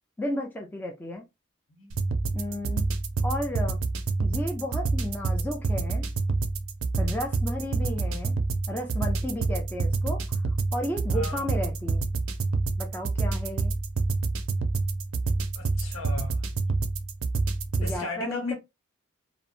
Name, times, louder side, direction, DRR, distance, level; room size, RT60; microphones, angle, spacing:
voice 1, 0.2-1.2 2.3-2.9 3.2-3.8 4.2-6.1 7.0-8.4 8.7-10.4 10.7-12.0 12.8-13.7 17.8-18.5, left 1 dB, 10° left, 0.4 m, -33 dB
sound 1, 1.9-18.0, right 3 dB, 80° right, 0.5 m, -28 dB
voice 2, 11.1-11.5 15.6-16.5 17.8-18.5, left 3 dB, 75° left, 1.0 m, -36 dB
2.8 x 2.0 x 2.4 m
head